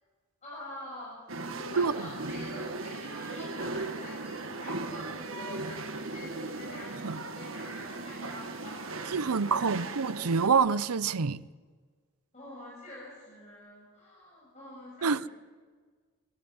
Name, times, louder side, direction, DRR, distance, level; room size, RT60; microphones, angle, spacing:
voice 1, 0.4-9.8 12.3-15.3, left 1 dB, 30° left, 7.0 m, -46 dB
sound 1, 1.3-10.5, right 3 dB, 65° right, 1.8 m, -38 dB
voice 2, 9.1-11.4 15.0-15.2, right 5 dB, 85° right, 0.7 m, -26 dB
24.0 x 14.0 x 9.6 m
head